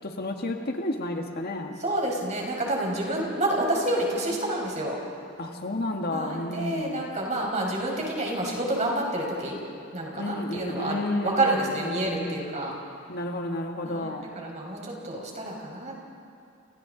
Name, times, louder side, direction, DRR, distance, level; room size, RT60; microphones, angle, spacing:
voice 1, 0.0-1.8 5.4-7.1 10.1-12.3 13.1-14.3, left 1 dB, 50° left, 3 dB, 1.7 m, -31 dB
voice 2, 1.8-5.0 6.1-9.6 9.9-12.8 13.8-16.0, right 1 dB, 35° right, -1 dB, 5.2 m, -29 dB
30.0 x 29.0 x 4.0 m, 2.5 s
head